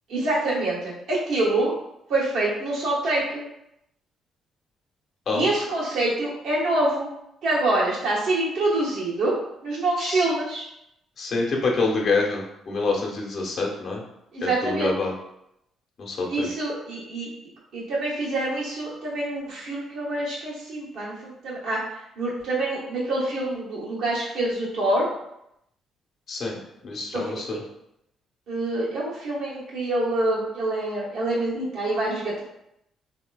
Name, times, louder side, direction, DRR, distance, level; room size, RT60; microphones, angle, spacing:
voice 1, 0.1-1.7 2.1-3.4 5.3-7.1 7.4-9.3 9.6-10.7 14.3-15.0 16.3-17.3 17.7-21.8 22.2-25.1 27.1-27.2 28.5-32.4, right 2 dB, 75° right, -5 dB, 1.1 m, -26 dB
voice 2, 11.2-14.0 14.4-15.1 16.0-16.5 26.3-26.6 26.8-27.6, left 3 dB, 60° left, -1 dB, 0.8 m, -26 dB
3.2 x 2.8 x 2.3 m, 0.80 s
supercardioid pair, 60°, 0 cm